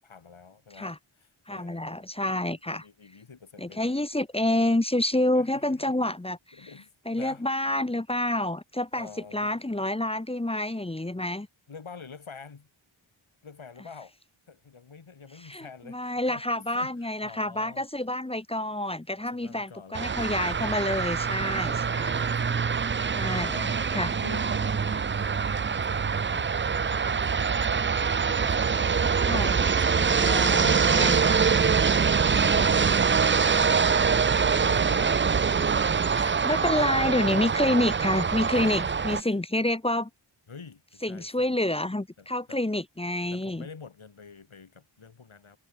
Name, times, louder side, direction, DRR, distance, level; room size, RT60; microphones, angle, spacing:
voice 1, 0.0-4.1 5.3-6.1 6.5-7.4 8.9-9.6 11.7-12.7 13.4-14.2 14.5-17.9 19.1-20.4 21.4-28.1 28.4-31.2 31.9-33.4 33.7-37.4 37.7-37.8 38.6-39.4 40.5-41.6 42.2-42.6 43.3-45.6, left 5 dB, 70° left, 6.0 m, -48 dB
voice 2, 1.5-2.9 3.6-6.7 7.1-11.5 15.4-22.2 23.1-23.5 23.9-24.1 29.2-29.6 30.0-31.4 36.0-40.1 41.0-43.7, left 1 dB, 10° left, 0.8 m, -28 dB
sound 1, 19.9-39.2, right 6 dB, 25° right, 0.4 m, -24 dB
wide cardioid pair, 60°, 49 cm